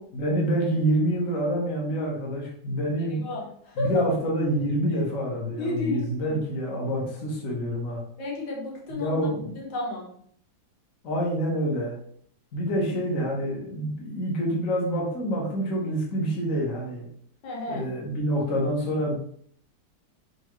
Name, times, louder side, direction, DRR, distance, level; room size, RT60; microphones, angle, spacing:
voice 1, 0.1-3.3 3.7-8.0 8.9-9.6 11.0-11.9 12.5-17.0 17.7-19.1, equal, 45° left, -2 dB, 1.4 m, -27 dB
voice 2, 5.5-6.4 8.2-9.2 9.6-10.1 17.4-17.9, left 2 dB, 85° left, -3 dB, 2.0 m, -31 dB
4.9 x 3.5 x 3.1 m, 0.64 s
omnidirectional pair, 2.2 m